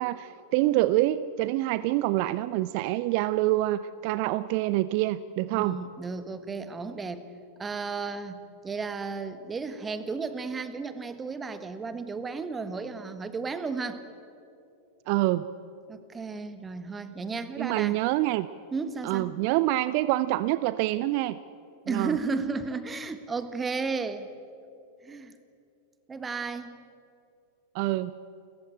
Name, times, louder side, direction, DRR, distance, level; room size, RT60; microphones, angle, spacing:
voice 1, 0.0-5.8 15.1-15.5 17.6-18.5 19.0-21.4 21.9-22.2 27.7-28.1, right 16 dB, 45° right, 16 dB, 0.5 m, -26 dB
voice 2, 5.5-7.3 7.6-14.0 15.9-18.0 18.7-19.3 21.9-24.3 25.0-25.3 26.1-26.8, right 4 dB, 15° right, 12 dB, 1.5 m, -33 dB
29.0 x 15.0 x 9.0 m, 2.6 s
figure-of-eight pair, 90°, 0 cm